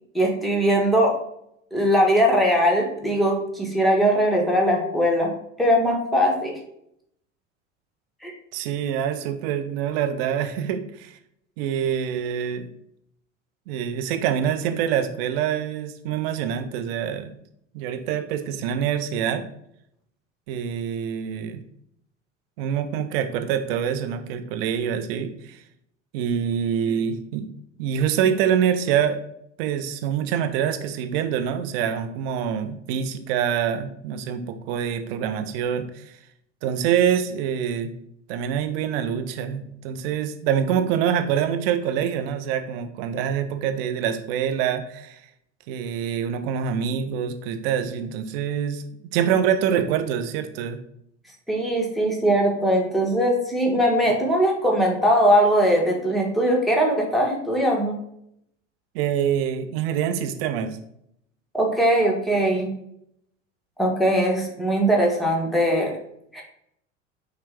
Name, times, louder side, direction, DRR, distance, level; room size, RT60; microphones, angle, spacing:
voice 1, 0.1-1.1 1.7-5.3 5.6-6.5 8.2-8.3 51.5-57.9 61.5-62.7 63.8-65.9 66.3-66.4, equal, ahead, -1 dB, 1.0 m, -20 dB
voice 2, 8.5-11.2 11.6-12.7 13.7-17.3 17.7-19.4 20.5-21.6 22.6-25.6 26.1-27.5 27.8-29.2 29.6-36.2 36.6-37.9 38.3-45.2 45.7-48.8 49.1-50.8 58.9-60.8, right 8 dB, 50° right, 8 dB, 0.6 m, -25 dB
5.7 x 2.3 x 3.4 m, 0.73 s
figure-of-eight pair, 75°, 37 cm